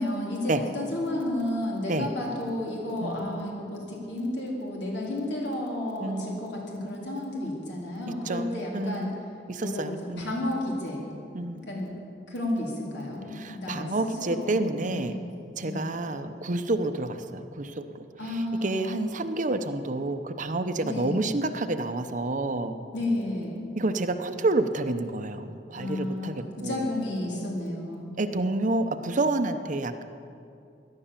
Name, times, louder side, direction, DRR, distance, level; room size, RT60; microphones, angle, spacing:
voice 1, 0.0-9.1 9.6-11.0 11.5-11.9 12.3-13.9 14.2-14.5 14.8-15.2 15.6-15.9 18.2-19.0 20.8-21.2 22.9-23.6 25.8-28.1, left 1 dB, 80° left, -2 dB, 3.9 m, -32 dB
voice 2, 6.0-6.4 8.1-9.2 9.5-10.3 11.3-11.6 13.3-15.2 15.6-22.8 23.8-26.9 28.2-30.0, right 2 dB, 45° right, 9 dB, 0.8 m, -29 dB
17.0 x 11.5 x 7.4 m, 2.5 s
head